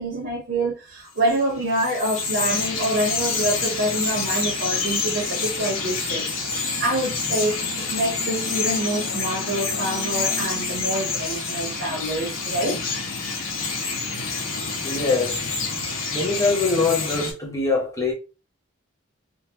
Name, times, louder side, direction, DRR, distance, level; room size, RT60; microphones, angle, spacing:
voice 1, 0.0-12.8, right 1 dB, 55° right, 0.8 m, -26 dB
Bird vocalization bird call bird song, 1.2-17.3, left 4 dB, 85° left, 1.0 m, -27 dB
voice 2, 14.8-15.4 16.1-18.1, left 3 dB, 15° left, 0.9 m, -23 dB
3.8 x 2.2 x 2.8 m
head